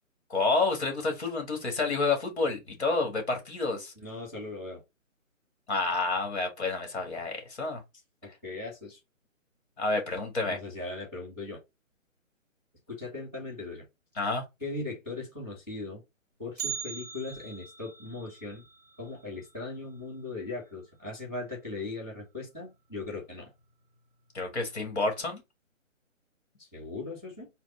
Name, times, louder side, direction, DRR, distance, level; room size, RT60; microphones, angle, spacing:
voice 1, 0.3-3.9 5.7-7.8 9.8-10.6 14.2-14.4 24.3-25.4, left 3 dB, 55° left, 2.0 m, -29 dB
voice 2, 3.9-4.8 8.4-9.0 10.4-11.6 12.9-13.8 14.6-16.0 16.4-18.6 19.0-23.5 26.6-27.5, left 3 dB, 5° left, 1.5 m, -39 dB
Bell, 16.6-20.7 20.9-21.0 21.5-21.6 22.4-22.5 23.3-23.6 23.9-24.0, right 7 dB, 30° right, 0.8 m, -42 dB
4.2 x 2.5 x 4.4 m
hypercardioid pair, 175°, 40 cm